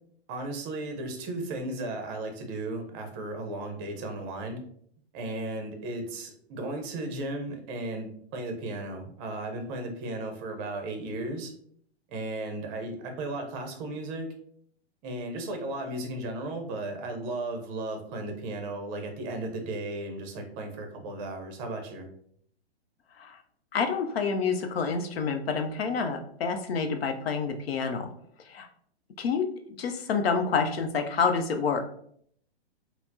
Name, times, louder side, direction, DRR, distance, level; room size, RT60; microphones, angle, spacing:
voice 1, 0.3-4.6 5.1-11.5 12.1-14.3 15.0-22.1, right 2 dB, 25° right, 4 dB, 0.6 m, -35 dB
voice 2, 23.7-28.1 28.5-28.7 29.2-29.5 29.8-31.9, left 5 dB, 65° left, 6 dB, 0.7 m, -28 dB
4.1 x 2.0 x 2.7 m, 0.65 s
hypercardioid pair, 130°, 32 cm